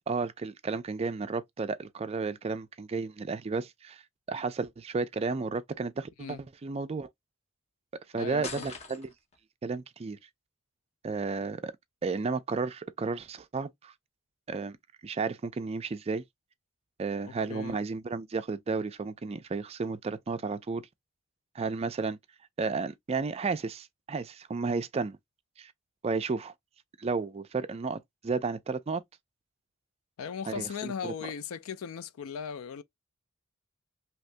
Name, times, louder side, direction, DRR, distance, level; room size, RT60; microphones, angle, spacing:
voice 1, 0.1-4.0 4.3-7.1 8.1-9.1 9.6-10.2 11.0-11.7 12.0-13.9 14.5-14.8 15.0-16.2 17.0-20.8 21.6-22.2 22.6-25.2 25.6-25.7 26.0-26.5 27.0-29.0 30.5-31.3, right 4 dB, 30° right, 0.3 m, -33 dB
voice 2, 8.2-8.7 17.2-17.8 30.2-32.8, left 7 dB, 75° left, 0.4 m, -38 dB
sound 1, 8.4-9.4, left 4 dB, 30° left, 0.7 m, -41 dB
2.9 x 2.6 x 3.2 m
head